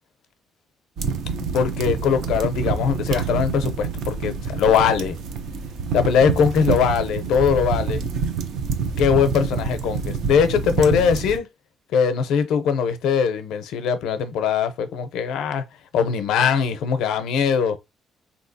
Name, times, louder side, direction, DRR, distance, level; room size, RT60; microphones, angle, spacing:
sound 1, 1.0-11.4, right 6 dB, 70° right, 0.5 m, -27 dB
voice 1, 1.5-5.2 5.9-8.0 9.0-11.5 11.9-15.6 15.9-17.8, left 7 dB, 80° left, 0.5 m, -21 dB
3.4 x 2.7 x 2.6 m
cardioid pair, 105°, 0 cm